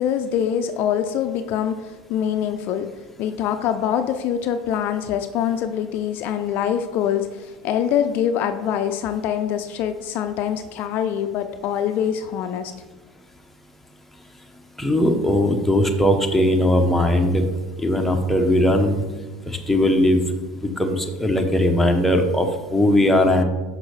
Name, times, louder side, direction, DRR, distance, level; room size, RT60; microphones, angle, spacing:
voice 1, 0.0-2.9 3.2-12.7, left 9 dB, 55° left, 9 dB, 0.4 m, -24 dB
voice 2, 14.8-17.4 17.8-19.0 19.5-20.2 20.8-23.4, left 1 dB, 5° left, 3 dB, 0.8 m, -19 dB
6.1 x 5.8 x 3.2 m, 1.2 s
supercardioid pair, 105°, 4 cm